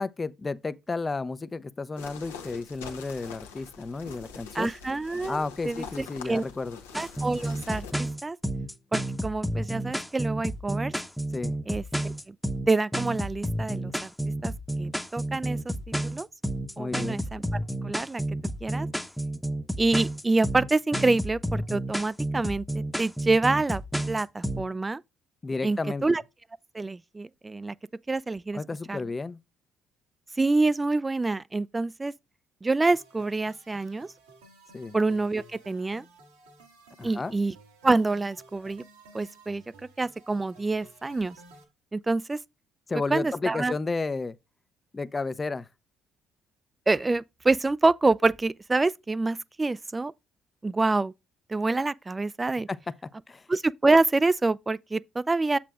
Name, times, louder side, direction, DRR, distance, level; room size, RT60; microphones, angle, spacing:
voice 1, 0.0-4.7 5.3-6.8 11.3-11.5 16.8-17.2 25.4-26.0 28.5-29.4 34.7-34.9 37.0-37.3 42.9-44.4 44.9-45.7 52.7-52.8 53.0-53.4, left 3 dB, 30° left, 0.5 m, -32 dB
sound 1, 2.0-7.9, left 6 dB, 90° left, 1.0 m, -44 dB
voice 2, 4.5-6.4 7.0-7.9 8.2-8.4 8.9-10.9 11.7-12.4 12.7-14.1 14.4-14.5 14.8-15.7 16.0-16.3 16.8-17.4 17.8-18.2 18.6-18.9 19.8-22.6 23.0-23.8 24.1-25.0 25.6-26.2 26.7-27.7 28.1-28.6 28.9-29.0 30.4-32.1 32.6-34.1 34.9-36.0 37.0-37.5 37.8-38.8 39.1-39.6 40.0-41.4 41.9-42.4 43.1-43.7 46.9-50.1 50.6-51.1 51.5-52.7 53.5-55.6, right 3 dB, 20° right, 0.3 m, -26 dB
sound 2, 6.9-24.6, right 1 dB, ahead, 0.8 m, -31 dB
sound 3, 32.9-41.6, right 2 dB, 90° right, 1.8 m, -54 dB
7.4 x 7.0 x 2.4 m
hypercardioid pair, 55°, 0 cm